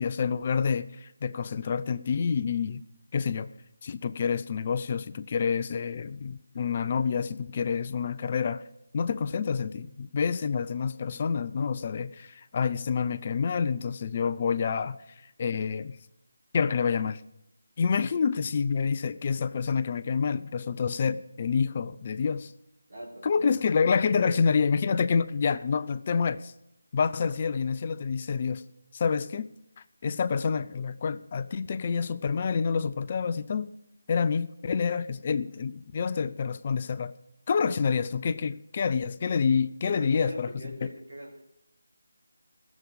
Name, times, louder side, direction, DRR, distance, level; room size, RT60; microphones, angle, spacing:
voice 1, 0.0-2.8 3.1-3.5 3.8-8.7 8.9-16.0 16.5-17.2 17.8-22.5 23.2-26.5 26.9-28.6 28.9-29.5 29.8-33.7 34.1-37.1 37.5-40.5 40.8-40.9, left 6 dB, 35° left, 0.5 m, -28 dB
voice 2, 22.9-23.4 24.2-24.7 39.8-41.4, equal, 60° right, 5.6 m, -42 dB
15.5 x 7.3 x 6.5 m
figure-of-eight pair, 160°, 0 cm